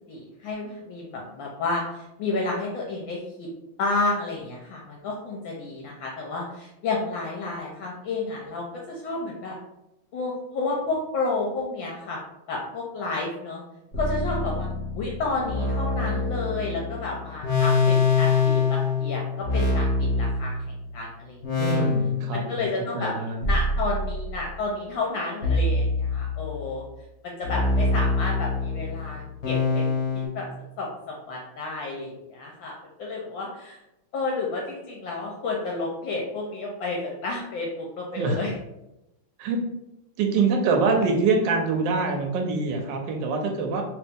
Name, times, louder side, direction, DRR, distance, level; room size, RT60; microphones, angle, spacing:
voice 1, 0.1-3.5 3.8-9.6 10.1-12.2 12.5-13.6 14.0-14.7 14.9-21.9 22.3-23.1 23.4-26.8 27.2-29.8 30.3-30.4 30.8-33.8 34.1-38.6, left 3 dB, 75° left, -2 dB, 1.3 m, -31 dB
sound 1, 13.9-20.9 21.4-22.6 23.4-24.6 25.4-26.7 27.4-30.3, left 3 dB, 45° left, 0.9 m, -25 dB
voice 2, 21.6-22.7 22.9-23.4 38.2-38.4 39.4-39.6 40.2-43.8, right 4 dB, 70° right, 3 dB, 1.2 m, -24 dB
3.2 x 2.9 x 3.5 m, 0.90 s
omnidirectional pair, 2.4 m